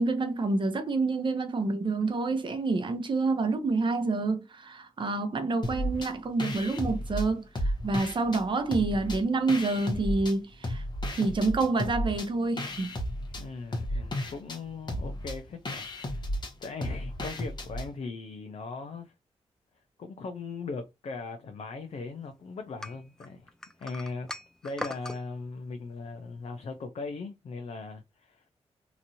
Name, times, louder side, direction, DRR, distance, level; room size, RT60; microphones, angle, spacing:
voice 1, 0.0-10.8 11.1-13.0, right 3 dB, 45° right, 0.7 m, -28 dB
sound 1, 5.6-6.1 6.4-8.4 8.7-10.3 10.6-17.9, left 1 dB, 40° left, 1.0 m, -33 dB
voice 2, 13.4-16.2 16.6-19.1 20.0-23.5 23.8-24.3 24.6-28.5, left 4 dB, 70° left, 0.6 m, -39 dB
sound 2, 22.8-25.2, left 1 dB, 5° left, 0.4 m, -40 dB
3.0 x 2.6 x 2.7 m
cardioid pair, 90°, 11 cm